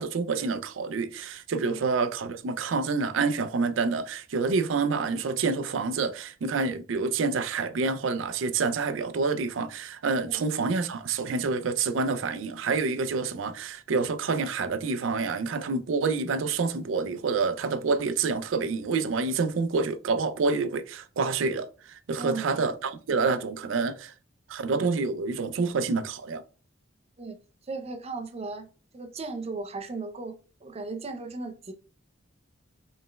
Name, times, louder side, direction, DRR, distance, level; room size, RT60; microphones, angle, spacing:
voice 1, 0.0-24.1 24.5-26.4, right 4 dB, 90° right, 0.4 m, -28 dB
voice 2, 22.2-22.5 27.2-27.4 27.7-28.7 28.9-31.7, right 3 dB, 35° right, 0.5 m, -36 dB
5.0 x 3.3 x 2.2 m
head